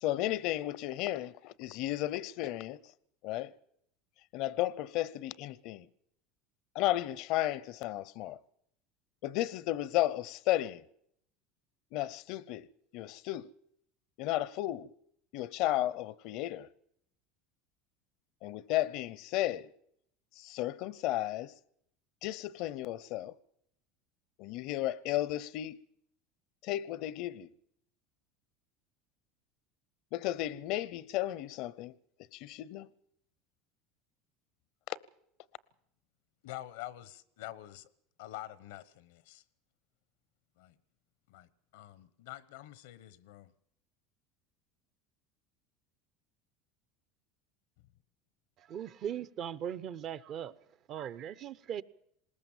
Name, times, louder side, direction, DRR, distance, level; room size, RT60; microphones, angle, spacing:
voice 1, 0.0-2.8 3.2-3.5 4.3-5.9 6.7-8.4 9.2-10.8 11.9-12.7 12.9-13.5 14.2-14.9 15.3-16.7 18.4-19.7 20.4-21.5 22.2-23.3 24.4-25.8 26.6-27.5 30.1-31.9 32.3-32.9 34.9-35.0, left 14 dB, 65° left, 0.7 m, -33 dB
voice 2, 36.4-37.9 38.2-39.4 40.6-40.8 41.3-43.5, left 15 dB, 85° left, 1.0 m, -47 dB
voice 3, 48.6-50.5 50.9-51.8, right 9 dB, 45° right, 0.8 m, -39 dB
20.5 x 18.5 x 7.3 m
supercardioid pair, 115°, 0 cm